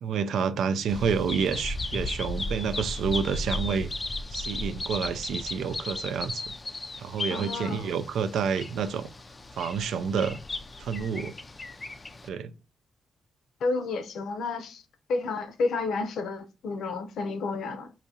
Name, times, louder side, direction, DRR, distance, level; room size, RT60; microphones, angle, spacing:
voice 1, 0.0-3.9 4.3-6.4 7.0-9.1 9.6-10.4 10.8-11.3 12.3-12.5, right 6 dB, 80° right, 0.4 m, -29 dB
Bird vocalization bird call bird song, 0.9-12.3, left 2 dB, 20° left, 0.3 m, -35 dB
voice 2, 7.3-7.9 13.6-14.8 15.1-17.9, left 3 dB, 80° left, 0.6 m, -31 dB
4.8 x 2.7 x 2.7 m
wide cardioid pair, 175°, 0 cm